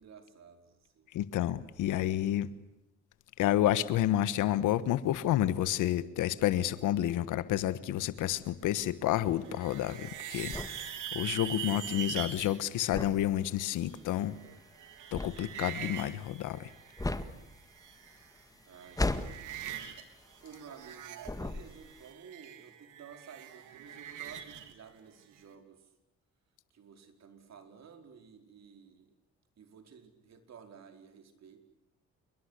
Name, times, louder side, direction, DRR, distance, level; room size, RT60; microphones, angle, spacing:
voice 1, 0.0-1.1 2.4-2.5 18.7-19.6 20.4-25.9 26.7-29.1 29.6-31.6, right 6 dB, 60° right, 4.7 m, -53 dB
voice 2, 1.1-2.5 3.4-14.3 15.1-16.7, left 13 dB, 90° left, 1.4 m, -30 dB
sound 1, 9.2-12.6 14.0-17.3 17.6-18.4 18.7-20.0 20.3-24.7, right 10 dB, 85° right, 3.2 m, -43 dB
sound 2, 9.7-20.9 21.2-22.1, left 2 dB, 10° left, 1.8 m, -38 dB
28.0 x 22.5 x 8.3 m
cardioid pair, 90°, 30 cm